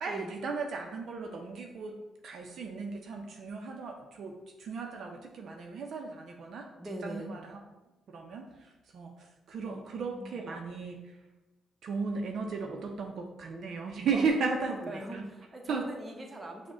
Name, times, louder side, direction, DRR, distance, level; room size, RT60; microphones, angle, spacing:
voice 1, 0.0-2.0 2.2-6.7 7.0-7.6 8.1-11.2 11.8-15.2 15.7-15.8, right 4 dB, 65° right, 2 dB, 0.5 m, -35 dB
voice 2, 6.8-7.3 9.7-10.4 14.1-16.7, right 1 dB, 25° right, 2 dB, 0.8 m, -41 dB
6.0 x 2.1 x 3.7 m, 1.0 s
cardioid pair, 90°, 0 cm